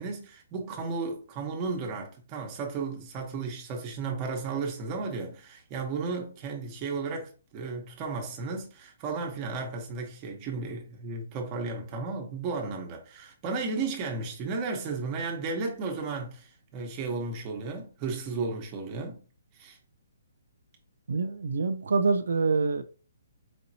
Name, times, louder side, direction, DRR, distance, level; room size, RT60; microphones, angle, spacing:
voice 1, 0.0-19.2 19.5-19.8, right 4 dB, 20° right, 1.0 m, -34 dB
voice 2, 21.1-22.8, right 4 dB, 80° right, 0.5 m, -26 dB
5.1 x 2.8 x 2.8 m
hypercardioid pair, 165°, 0 cm